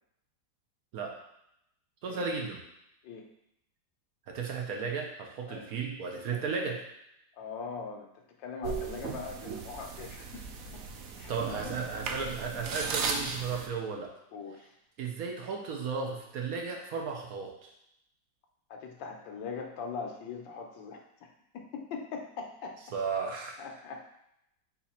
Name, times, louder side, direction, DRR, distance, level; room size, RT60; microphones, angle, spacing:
voice 1, 2.0-2.6 4.3-6.8 11.3-14.1 15.0-17.7 22.9-23.6, right 5 dB, 65° right, 1 dB, 1.0 m, -34 dB
voice 2, 7.3-10.4 10.7-10.8 11.2-11.6 14.3-14.7 18.7-21.3 21.5-22.8 23.6-24.0, left 5 dB, 85° left, 3 dB, 1.4 m, -41 dB
Laptop Malfunction Beeps, 8.6-13.7, right 5 dB, 85° right, 0.7 m, -36 dB
4.2 x 2.9 x 4.1 m, 0.81 s
omnidirectional pair, 2.0 m